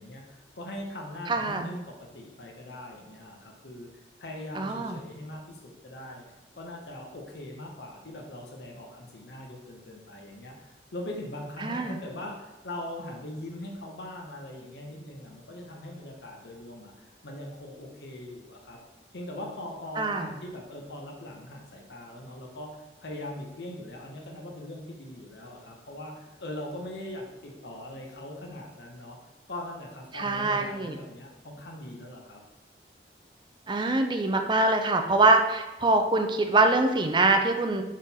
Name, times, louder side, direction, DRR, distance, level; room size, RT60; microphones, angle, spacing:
voice 1, 0.0-6.2 6.6-18.8 19.1-29.2 29.5-32.4, left 1 dB, 70° left, 1 dB, 0.9 m, -41 dB
voice 2, 1.3-1.7 4.6-5.0 11.6-12.0 20.0-20.3 30.1-31.0 33.7-37.8, right 2 dB, 25° right, 5 dB, 0.5 m, -24 dB
6.2 x 3.8 x 4.1 m, 1.1 s
head